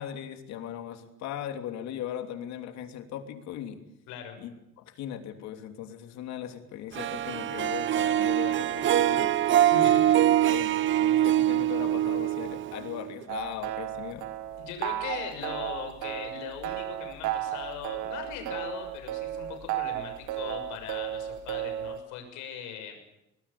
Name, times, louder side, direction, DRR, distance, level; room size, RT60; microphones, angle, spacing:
voice 1, 0.0-3.8 4.4-4.5 4.8-9.3 9.9-14.3, left 10 dB, 65° left, 7 dB, 3.1 m, -38 dB
voice 2, 4.1-4.4 9.7-10.2 14.6-23.0, left 8 dB, 85° left, 5 dB, 6.7 m, -40 dB
Harp, 6.9-13.2, right 12 dB, 40° right, 0.9 m, -24 dB
sound 1, 13.3-22.0, right 12 dB, 80° right, 2.4 m, -34 dB
25.0 x 21.0 x 8.6 m, 0.84 s
cardioid pair, 160°, 29 cm